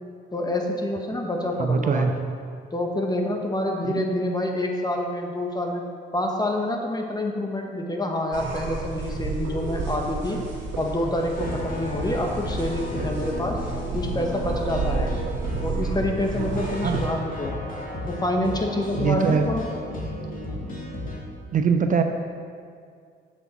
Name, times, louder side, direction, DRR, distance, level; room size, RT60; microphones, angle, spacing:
voice 1, 0.3-2.1 2.7-5.8 6.1-10.4 10.8-13.6 13.9-15.1 15.6-17.6 18.1-19.6 20.4-20.6, left 1 dB, 20° left, 2 dB, 1.0 m, -27 dB
voice 2, 1.6-2.2 3.8-4.0 16.8-17.0 19.0-19.5 21.5-22.0, right 5 dB, 40° right, 6 dB, 0.4 m, -22 dB
sound 1, 8.3-17.1, right 4 dB, 70° right, 1.7 m, -31 dB
sound 2, 11.3-21.2, left 1 dB, 45° left, 1.7 m, -34 dB
7.2 x 6.0 x 4.1 m, 2.2 s
cardioid pair, 90°, 20 cm